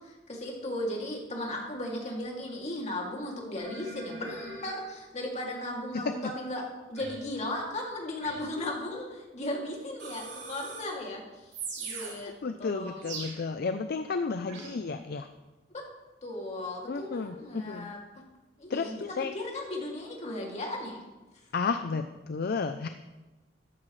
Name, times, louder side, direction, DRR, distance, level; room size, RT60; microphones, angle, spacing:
voice 1, 0.0-13.0 15.7-15.8 16.2-18.0 18.6-21.0, left 1 dB, 40° left, -1 dB, 2.6 m, -36 dB
sound 1, 3.6-4.8 7.0-7.3 8.2-8.5 10.0-11.0 11.5-12.3 13.0-13.4 14.5-14.8, right 4 dB, 75° right, 2.9 m, -41 dB
voice 2, 12.4-15.3 16.9-17.9 18.7-19.3 21.5-22.9, left 4 dB, 55° left, 9 dB, 0.5 m, -32 dB
13.5 x 11.5 x 3.2 m, 1.1 s
head